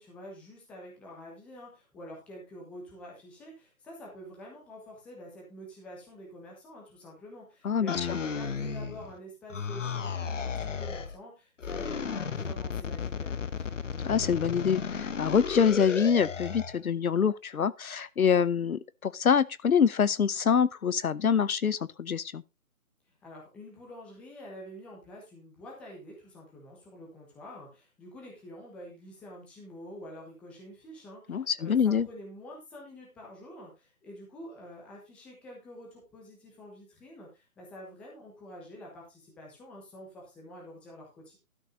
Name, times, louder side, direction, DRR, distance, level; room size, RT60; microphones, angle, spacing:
voice 1, 0.0-13.7 23.1-41.4, equal, 5° left, 1.1 m, -47 dB
voice 2, 7.6-8.2 14.0-22.4 31.3-32.1, left 7 dB, 75° left, 0.8 m, -25 dB
sound 1, 7.9-9.2 9.5-11.2 11.6-16.8, left 6 dB, 55° left, 1.2 m, -34 dB
12.5 x 5.4 x 4.9 m
figure-of-eight pair, 160°, 43 cm